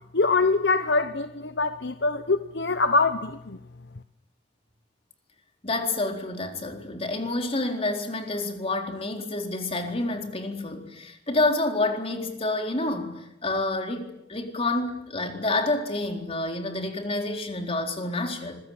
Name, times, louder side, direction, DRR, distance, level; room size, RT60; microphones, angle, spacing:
voice 1, 0.1-3.3, left 3 dB, 65° left, 10 dB, 1.0 m, -23 dB
voice 2, 5.6-18.5, left 2 dB, 35° left, 3 dB, 4.2 m, -28 dB
25.5 x 21.5 x 9.0 m, 0.84 s
head